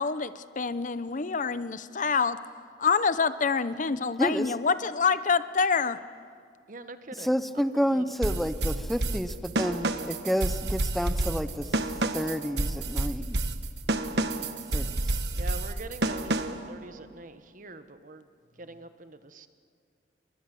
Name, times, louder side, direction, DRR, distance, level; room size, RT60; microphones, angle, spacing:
voice 1, 0.0-2.4 2.8-6.0, left 5 dB, 45° left, 14 dB, 0.8 m, -26 dB
voice 2, 6.7-7.6 7.9-8.4 15.3-18.3 18.6-19.5, right 2 dB, 50° right, 10 dB, 1.2 m, -44 dB
voice 3, 7.2-11.7 12.1-13.4 14.7-15.0, equal, ahead, 11 dB, 0.8 m, -29 dB
sound 1, 8.2-16.7, right 2 dB, 70° right, 1.3 m, -29 dB
30.0 x 23.0 x 7.7 m, 2.1 s
head